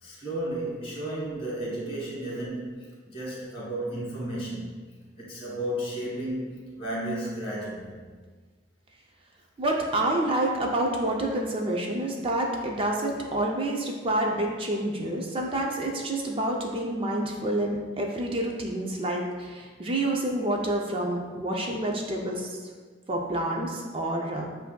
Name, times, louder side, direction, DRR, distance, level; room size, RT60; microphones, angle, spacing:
voice 1, 0.0-4.8 5.2-6.5 6.7-8.0, right 1 dB, 30° left, -6 dB, 1.4 m, -33 dB
voice 2, 9.6-22.7 23.1-24.5, right 1 dB, 25° right, 0 dB, 0.4 m, -28 dB
7.8 x 2.6 x 2.2 m, 1.5 s
head